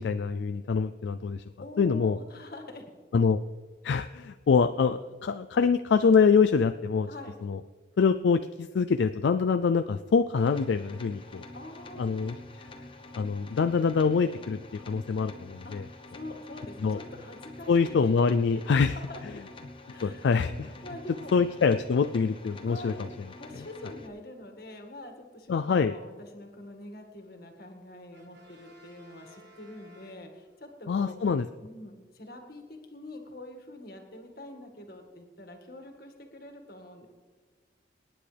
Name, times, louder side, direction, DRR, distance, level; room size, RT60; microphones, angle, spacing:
voice 1, 0.0-1.4 1.8-2.2 3.1-3.4 3.8-7.1 7.4-7.6 8.0-11.4 12.0-12.3 13.2-15.8 16.8-17.0 17.7-19.0 20.0-20.7 21.3-22.9 25.5-25.9 30.9-31.4, left 5 dB, 75° left, 10 dB, 0.4 m, -25 dB
voice 2, 1.6-2.8 7.1-7.4 11.2-12.2 15.6-18.2 18.5-19.4 19.9-20.3 20.6-21.3 22.7-23.1 23.4-31.2 31.6-37.1, left 1 dB, 55° left, 4 dB, 2.0 m, -45 dB
sound 1, 10.4-24.1, left 2 dB, 30° left, 1.1 m, -47 dB
Brass instrument, 28.1-30.8, equal, 85° right, 1.8 m, -57 dB
26.5 x 9.9 x 3.4 m, 1.5 s
head